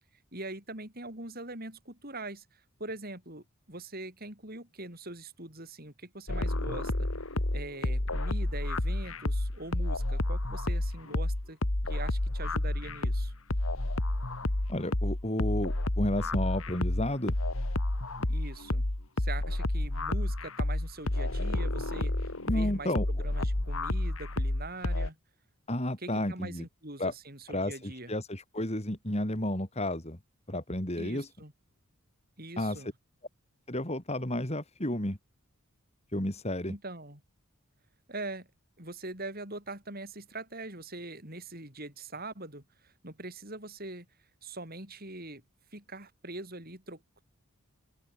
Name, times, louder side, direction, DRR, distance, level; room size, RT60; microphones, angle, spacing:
voice 1, 0.3-7.1 7.5-11.6 11.9-13.3 18.2-18.9 19.2-25.2 26.0-28.1 31.0-31.5 32.4-32.9 36.7-37.2 38.1-38.5 38.8-44.1 44.4-45.4 45.7-47.0, right 2 dB, 40° right, 7.8 m, -43 dB
sound 1, 6.3-25.1, left 1 dB, 65° left, 2.1 m, -30 dB
voice 2, 14.7-17.3 22.5-23.1 25.7-26.6 27.0-27.1 27.5-30.2 30.5-31.3 32.6-32.8 33.7-35.2 36.1-36.7, left 1 dB, 30° left, 3.6 m, -32 dB
open air
head